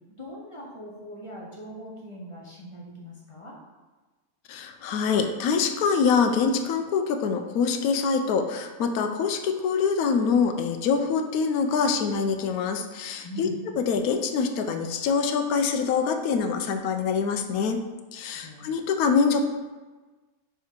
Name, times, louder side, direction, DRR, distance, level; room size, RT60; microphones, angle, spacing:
voice 1, 0.1-3.5 13.2-13.6 18.1-18.7, equal, 25° left, -4 dB, 1.1 m, -41 dB
voice 2, 4.5-13.5 13.8-17.8 18.1-19.4, left 5 dB, 80° left, 6 dB, 1.1 m, -25 dB
6.5 x 3.4 x 4.6 m, 1.3 s
omnidirectional pair, 1.6 m